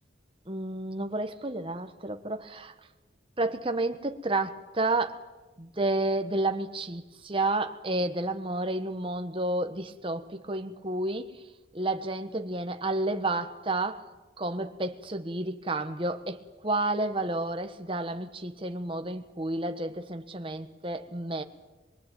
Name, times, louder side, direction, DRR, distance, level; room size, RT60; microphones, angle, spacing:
voice 1, 0.5-2.7 3.4-5.2 5.6-11.4 11.7-14.0 14.4-21.4, right 2 dB, 25° right, 1.4 m, -31 dB
24.0 x 22.5 x 9.3 m
head